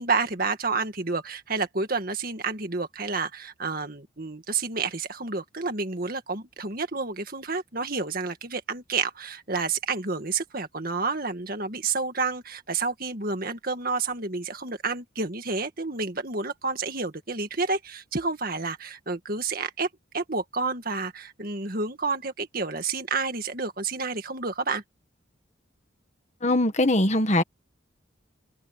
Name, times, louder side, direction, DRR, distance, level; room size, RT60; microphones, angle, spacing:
voice 1, 0.0-19.9 20.1-24.8, right 4 dB, 45° right, 1.9 m, -29 dB
voice 2, 26.4-27.4, left 1 dB, 35° left, 1.6 m, -21 dB
open air
head